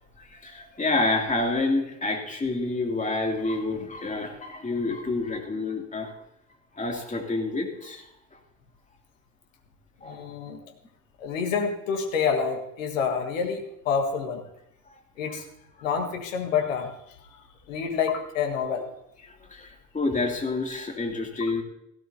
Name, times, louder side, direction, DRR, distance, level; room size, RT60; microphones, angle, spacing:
voice 1, 0.2-6.1 6.7-8.0 10.0-10.2 19.5-21.6, left 2 dB, 20° left, 1 dB, 2.7 m, -28 dB
voice 2, 10.0-10.6 11.2-14.4 15.2-15.4 15.8-16.9 17.7-18.9 21.4-21.5, left 6 dB, 75° left, 4 dB, 1.7 m, -28 dB
16.5 x 16.5 x 2.8 m, 0.80 s
figure-of-eight pair, 55°, 39 cm